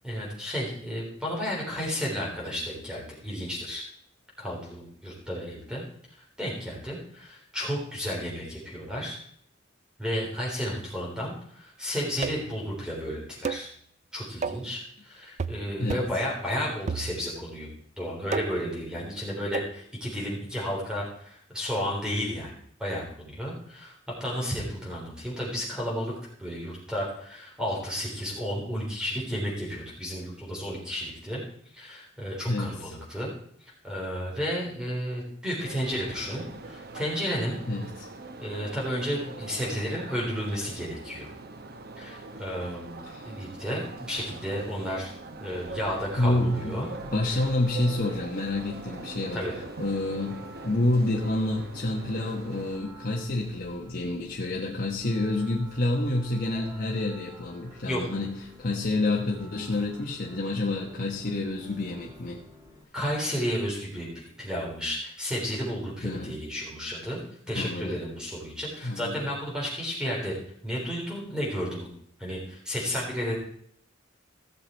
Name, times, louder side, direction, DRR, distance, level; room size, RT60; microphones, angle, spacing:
voice 1, 0.0-3.8 4.4-5.8 6.4-9.2 10.0-13.7 14.1-17.7 18.0-23.9 24.2-26.1 26.4-31.4 31.7-33.3 33.6-37.6 38.4-41.3 42.0-43.0 43.3-45.1 45.4-46.9 47.3-47.4 49.3-49.5 57.8-58.0 62.9-67.2 67.5-70.4 70.6-71.9 72.2-73.4, equal, 5° right, -4 dB, 3.8 m, -32 dB
sound 1, 12.2-12.6 13.4-13.7 14.4-14.7 15.4-15.6 15.9-16.2 16.9-17.5 18.3-18.7 19.5-19.8, right 5 dB, 35° right, 0.4 m, -33 dB
voice 2, 32.5-32.9 37.7-38.1 43.0-43.3 46.2-49.4 49.8-62.4 66.0-66.4 67.5-68.0 68.8-69.3, left 2 dB, 45° left, -2 dB, 1.2 m, -28 dB
sound 2, 35.6-52.8, right 3 dB, 50° right, 0.9 m, -43 dB
sound 3, 45.6-62.9, equal, 20° right, 1.7 m, -49 dB
15.5 x 6.8 x 4.5 m, 0.64 s
head